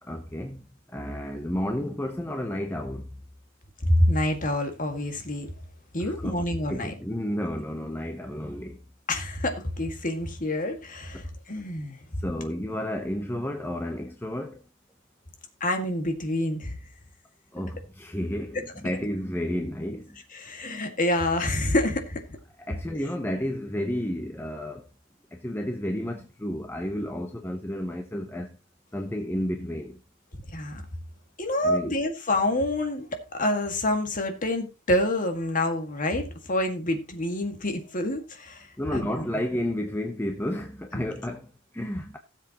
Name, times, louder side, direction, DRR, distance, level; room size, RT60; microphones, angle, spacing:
voice 1, 0.0-3.1 6.0-8.8 11.1-11.3 12.2-14.6 17.5-20.2 22.7-24.9 25.3-28.6 28.9-30.0 31.6-31.9 38.8-42.2, equal, 10° left, 0.8 m, -32 dB
voice 2, 3.8-5.5 5.9-6.9 9.1-12.0 15.6-16.8 20.3-22.2 30.5-30.8 31.4-38.7 38.9-39.2 40.9-41.0, left 1 dB, 40° left, 1.9 m, -27 dB
17.0 x 7.4 x 3.0 m
head